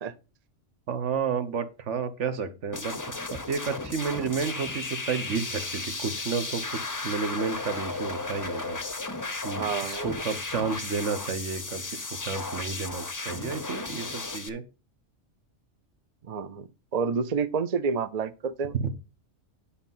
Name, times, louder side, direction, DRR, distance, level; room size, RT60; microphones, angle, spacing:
voice 1, 0.9-2.9 3.3-8.8 9.4-14.6 18.8-18.9, right 5 dB, 70° right, 1.4 m, -31 dB
sound 1, 2.7-14.5, left 3 dB, 20° left, 0.6 m, -34 dB
voice 2, 9.5-10.1 16.3-18.8, right 5 dB, 40° right, 0.6 m, -29 dB
10.0 x 4.2 x 5.5 m
omnidirectional pair, 1.3 m